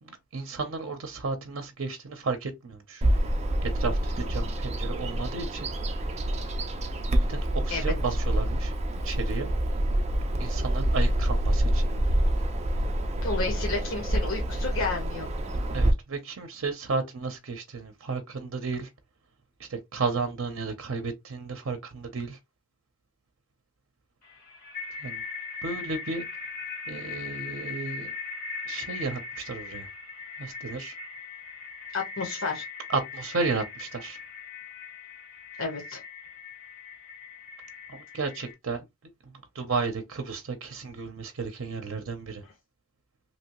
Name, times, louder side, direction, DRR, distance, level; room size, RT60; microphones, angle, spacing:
voice 1, 0.0-3.0 3.6-5.7 7.3-8.7 9.0-9.5 10.4-11.9 15.7-18.9 19.6-22.4 25.0-25.2 25.6-26.2 26.9-28.1 28.7-29.9 30.4-31.0 32.9-34.2 37.9-38.8 39.5-42.4, right 4 dB, 75° right, 0.6 m, -33 dB
Bird vocalization bird call bird song, 3.0-15.9, right 1 dB, 30° right, 0.4 m, -27 dB
voice 2, 13.2-15.3 31.9-32.6 35.6-36.0, left 3 dB, 75° left, 1.0 m, -31 dB
sound 1, 24.2-38.5, left 4 dB, 40° left, 1.8 m, -40 dB
2.9 x 2.7 x 2.9 m
head